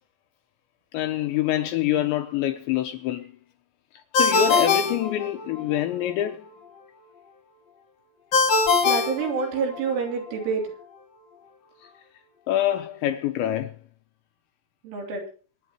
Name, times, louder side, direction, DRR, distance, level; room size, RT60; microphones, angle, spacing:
voice 1, 0.9-3.3 4.1-6.5 11.8-11.9 12.5-13.7, left 12 dB, 80° left, 2.7 m, -26 dB
Ringtone, 4.1-5.8 8.3-10.0, left 4 dB, 50° left, 1.9 m, -22 dB
voice 2, 8.8-10.6 14.8-15.2, right 5 dB, 70° right, 5.4 m, -27 dB
25.5 x 10.0 x 3.0 m
omnidirectional pair, 5.9 m